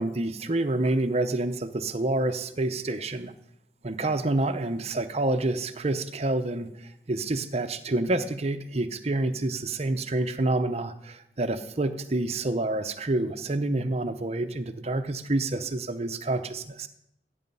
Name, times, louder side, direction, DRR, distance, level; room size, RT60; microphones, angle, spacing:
voice 1, 0.0-3.3 3.8-16.9, right 2 dB, 35° right, 9 dB, 0.8 m, -28 dB
16.5 x 8.5 x 5.5 m, 0.80 s
head